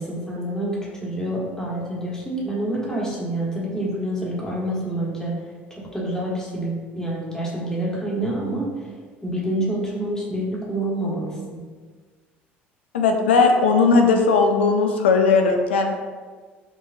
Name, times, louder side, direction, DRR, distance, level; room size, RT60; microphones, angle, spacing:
voice 1, 0.0-5.4 5.8-8.7 9.2-11.6, right 1 dB, 10° left, -5 dB, 1.4 m, -27 dB
voice 2, 12.9-16.0, left 4 dB, 80° left, 4 dB, 0.4 m, -17 dB
4.6 x 2.8 x 2.6 m, 1.5 s
hypercardioid pair, 60°, 6 cm